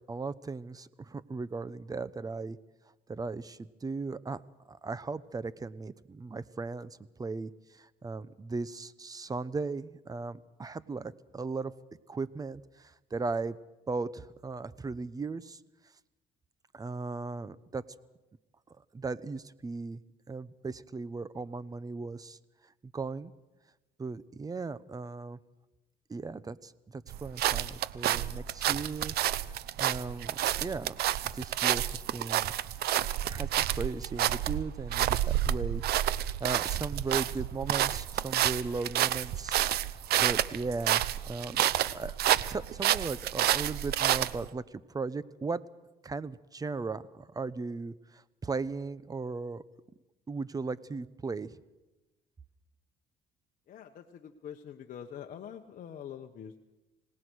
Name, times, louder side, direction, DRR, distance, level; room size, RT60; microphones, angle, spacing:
voice 1, 0.1-2.6 3.1-4.4 4.7-11.7 12.1-13.6 13.9-15.6 16.7-17.8 18.9-20.0 20.3-22.4 22.8-23.3 24.0-25.4 26.1-29.1 29.4-30.9 31.3-32.5 33.3-39.6 39.9-42.2 42.5-45.6 46.0-49.6 50.3-51.6, right 4 dB, 20° right, 17 dB, 0.9 m, -37 dB
sound 1, 27.1-44.5, right 12 dB, 70° right, 0.8 m, -29 dB
voice 2, 53.7-56.6, left 9 dB, 55° left, 4 dB, 1.2 m, -45 dB
26.5 x 18.5 x 6.4 m, 1.1 s
cardioid pair, 110°, 17 cm